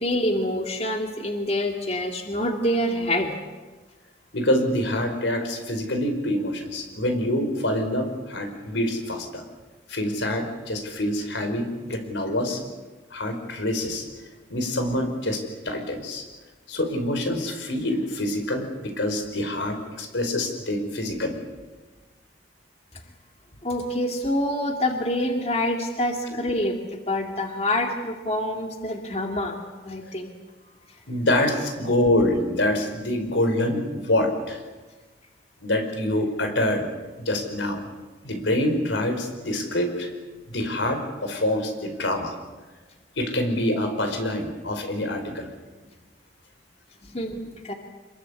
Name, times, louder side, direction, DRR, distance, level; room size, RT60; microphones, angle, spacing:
voice 1, 0.0-3.4 23.6-30.3 47.1-47.4 47.6-47.7, left 1 dB, 35° left, 3 dB, 2.3 m, -26 dB
voice 2, 4.3-9.4 9.9-12.6 13.1-14.1 14.5-16.3 16.7-21.4 31.1-34.6 35.6-36.9 37.3-37.8 38.2-40.1 40.5-42.3 43.2-45.5, left 1 dB, 90° left, 6 dB, 5.2 m, -26 dB
26.5 x 22.0 x 8.4 m, 1.3 s
head